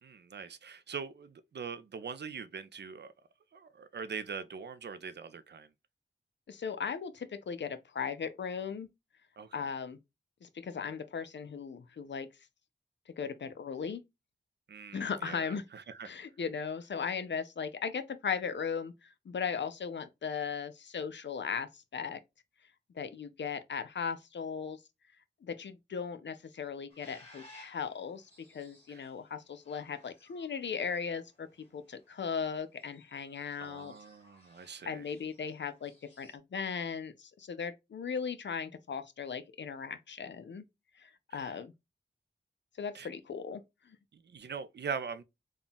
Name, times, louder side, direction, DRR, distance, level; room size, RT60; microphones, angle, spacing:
voice 1, 0.0-3.1 3.5-5.7 9.4-9.7 14.7-16.1 28.9-29.1 33.6-35.1 41.3-41.6 42.9-43.1 44.1-45.2, right 6 dB, 65° right, 0.5 m, -42 dB
voice 2, 6.5-8.9 9.5-10.0 10.4-12.3 13.2-14.0 14.9-15.6 16.0-22.2 22.9-24.8 25.4-31.5 31.7-33.9 34.9-35.9 36.2-40.6 41.0-41.7 42.8-43.6 43.9-44.0, left 6 dB, 70° left, 0.5 m, -37 dB
sound 1, 26.9-36.4, left 1 dB, 30° left, 1.8 m, -61 dB
3.7 x 2.3 x 3.9 m
wide cardioid pair, 70°, 19 cm